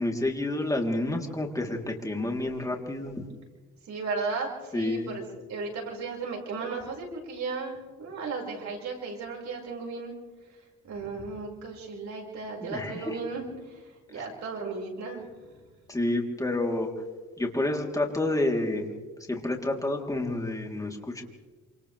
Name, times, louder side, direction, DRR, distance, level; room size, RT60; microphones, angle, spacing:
voice 1, 0.0-3.2 4.7-5.2 12.7-13.2 14.2-14.3 15.9-16.9 17.4-18.9 19.3-21.2, left 2 dB, 10° left, 1 dB, 3.6 m, -29 dB
voice 2, 3.9-5.2 5.5-10.1 10.8-15.6, right 4 dB, 65° right, -1 dB, 5.8 m, -35 dB
28.0 x 26.5 x 3.5 m, 1.3 s
cardioid pair, 90°, 30 cm